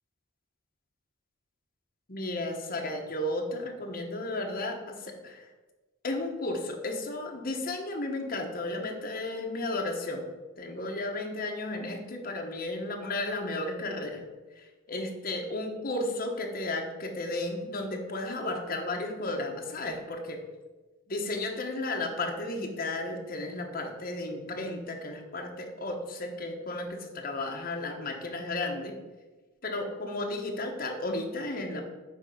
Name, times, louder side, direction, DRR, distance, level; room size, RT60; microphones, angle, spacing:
voice 1, 2.1-5.5 6.0-10.2 10.6-14.2 14.6-20.4 21.1-28.9 29.6-31.8, left 2 dB, 45° left, 2 dB, 1.0 m, -33 dB
8.8 x 3.4 x 5.4 m, 1.2 s
head